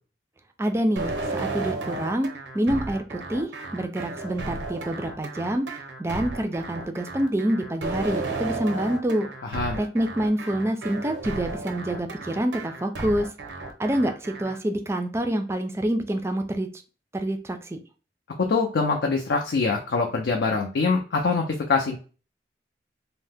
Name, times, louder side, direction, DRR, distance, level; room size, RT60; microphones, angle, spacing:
voice 1, 0.6-2.3 2.5-5.7 6.0-9.3 9.8-13.3 13.8-16.7 17.1-17.8, right 1 dB, 15° right, 7 dB, 0.3 m, -27 dB
sound 1, 1.0-14.6, right 3 dB, 90° right, 0.6 m, -34 dB
voice 2, 9.4-9.8 18.5-21.4 21.7-22.0, left 4 dB, 80° left, 1 dB, 0.5 m, -24 dB
2.7 x 2.0 x 3.4 m, 0.36 s
head